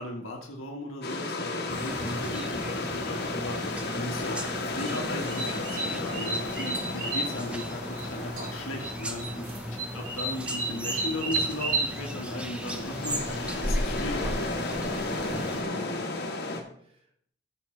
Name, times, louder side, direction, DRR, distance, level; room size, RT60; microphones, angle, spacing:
voice 1, 0.0-3.6 3.9-13.3 13.6-14.4 15.7-16.0, left 1 dB, 85° left, 0 dB, 1.5 m, -37 dB
sound 1, 1.0-16.6, left 2 dB, 55° left, 1.4 m, -34 dB
sound 2, 1.7-15.6, equal, 5° right, 0.7 m, -36 dB
voice 2, 2.0-2.4 9.9-10.1 15.1-17.3, equal, 30° right, 1 dB, 1.2 m, -47 dB
sound 3, 4.8-8.1 8.4-8.9 9.2-11.9, right 2 dB, 90° right, 2.5 m, -32 dB
13.5 x 6.3 x 3.3 m, 0.62 s
head